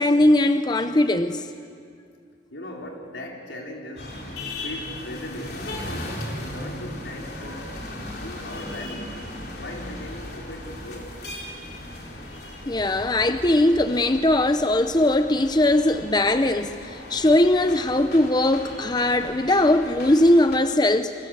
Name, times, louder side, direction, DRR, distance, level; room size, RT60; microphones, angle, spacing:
voice 1, 0.0-1.4 12.7-21.1, left 1 dB, 25° left, 0.7 m, -20 dB
voice 2, 2.5-4.2 4.5-7.8 8.2-9.2 9.5-11.2, left 1 dB, 90° left, 4.5 m, -38 dB
sound 1, 4.0-20.6, left 1 dB, 60° left, 4.0 m, -37 dB
28.5 x 24.5 x 7.9 m
head